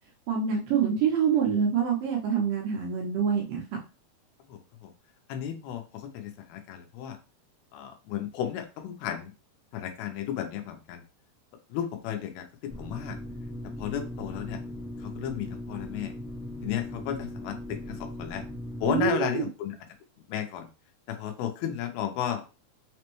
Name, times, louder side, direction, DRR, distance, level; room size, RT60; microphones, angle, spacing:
voice 1, 0.3-3.6 18.9-19.5, right 7 dB, 75° right, -1 dB, 2.1 m, -26 dB
voice 2, 4.5-4.9 5.3-7.2 7.7-9.3 9.7-11.0 11.7-13.2 13.8-14.6 15.0-16.1 16.6-18.4 18.8-19.8 20.3-20.7 21.1-22.4, left 9 dB, 80° left, 5 dB, 2.5 m, -33 dB
sound 1, 12.7-19.1, left 1 dB, 5° right, 0.4 m, -39 dB
5.9 x 2.2 x 3.0 m, 0.31 s
omnidirectional pair, 4.4 m